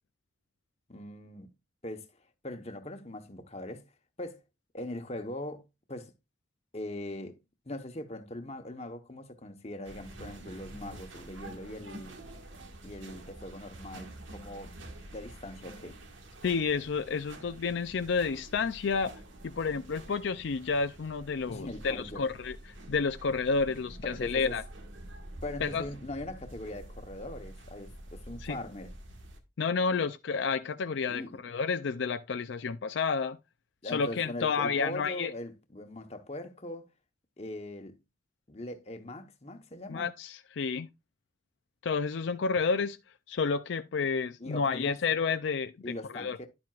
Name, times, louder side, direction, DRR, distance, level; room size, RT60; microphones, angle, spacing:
voice 1, 0.9-1.5 1.8-2.1 2.4-3.9 4.2-4.4 4.7-6.1 6.7-7.4 7.6-12.2 12.8-14.8 15.1-16.0 21.5-22.3 24.0-24.6 25.4-29.0 31.1-31.4 33.8-36.9 37.4-38.0 38.5-40.1 44.4-45.0 45.8-46.5, left 1 dB, 35° left, 1.1 m, -41 dB
sound 1, 9.8-29.4, right 1 dB, 85° right, 1.6 m, -47 dB
voice 2, 16.4-22.6 22.9-24.6 25.6-25.9 28.4-28.6 29.6-33.4 33.9-35.3 39.9-40.9 41.8-43.0 43.3-45.7 46.1-46.4, left 5 dB, 70° left, 0.4 m, -30 dB
11.0 x 7.5 x 2.4 m
head